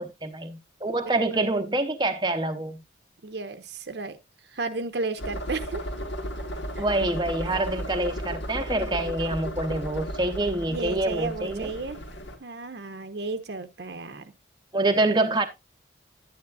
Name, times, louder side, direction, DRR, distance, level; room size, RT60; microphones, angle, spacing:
voice 1, 0.0-2.8 6.8-11.7 14.7-15.5, right 2 dB, 20° right, 0.8 m, -26 dB
voice 2, 3.2-4.2 4.5-5.8 6.8-6.9 7.4-7.5 10.7-12.0 12.4-14.3, right 3 dB, 60° right, 0.9 m, -33 dB
sound 1, 5.2-12.4, equal, 75° left, 2.2 m, -34 dB
11.0 x 9.6 x 2.4 m
head